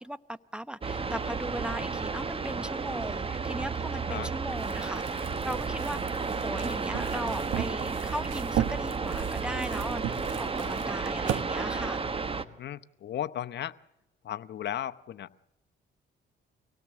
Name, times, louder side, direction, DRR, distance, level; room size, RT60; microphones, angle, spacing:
voice 1, 0.0-12.0, right 1 dB, 5° right, 0.8 m, -38 dB
sound 1, 0.8-12.4, right 4 dB, 30° right, 1.2 m, -32 dB
sound 2, 4.5-11.4, right 11 dB, 75° right, 1.0 m, -36 dB
voice 2, 10.4-10.8 12.4-13.8 14.2-15.4, left 11 dB, 60° left, 0.8 m, -36 dB
24.5 x 17.5 x 7.4 m
cardioid pair, 90°, 20 cm